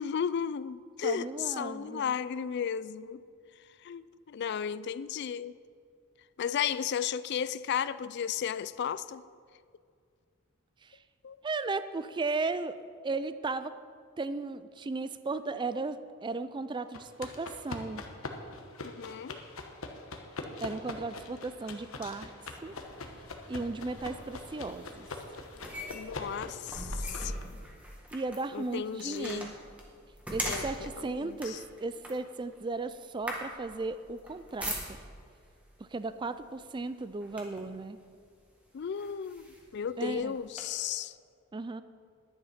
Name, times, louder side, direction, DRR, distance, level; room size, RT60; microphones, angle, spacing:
voice 1, 0.0-3.2 3.8-5.5 6.4-9.2 11.2-11.4 18.8-19.4 25.9-27.3 28.5-29.5 30.4-30.7 31.0-31.6 38.7-41.1, left 8 dB, 55° left, 0.3 m, -34 dB
voice 2, 1.0-2.1 10.8-10.9 11.4-12.8 13.0-13.7 14.2-18.0 20.6-22.3 22.6-22.8 23.5-25.1 28.1-29.6 30.3-34.8 35.8-38.0 40.0-40.4 41.5-41.8, right 3 dB, 20° right, 0.4 m, -35 dB
sound 1, 16.9-27.4, left 3 dB, 80° left, 1.2 m, -43 dB
sound 2, 22.5-35.3 36.1-36.4 36.8-37.8 38.4-38.5 38.9-40.6, equal, 5° right, 1.7 m, -41 dB
10.5 x 9.8 x 5.7 m
head